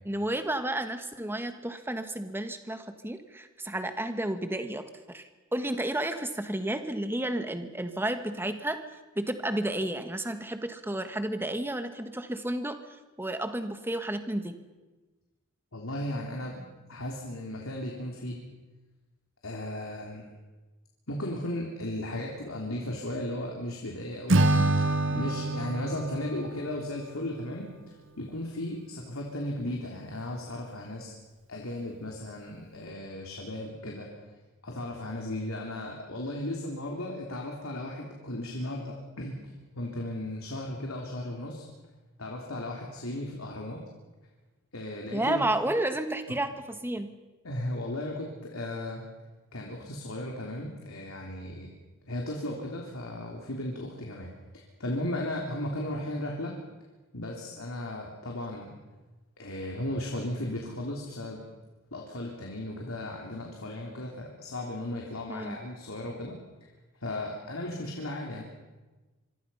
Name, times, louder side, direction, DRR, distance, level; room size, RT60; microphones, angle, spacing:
voice 1, 0.0-8.8 9.1-12.7 13.2-14.6 45.1-47.1 65.3-65.6, right 1 dB, 10° right, 8 dB, 1.6 m, -31 dB
voice 2, 15.7-16.6 16.9-18.4 19.4-20.4 21.1-24.5 25.1-31.1 31.5-34.1 34.6-41.6 42.2-43.8 44.7-45.4 47.4-49.0 49.5-51.7 52.1-56.6 57.1-58.7 59.4-61.4 61.9-66.4 67.0-68.4, left 1 dB, 85° left, 0 dB, 3.4 m, -36 dB
Acoustic guitar / Strum, 24.3-27.6, right 2 dB, 65° right, 1.5 m, -27 dB
26.0 x 24.5 x 5.7 m, 1.2 s
head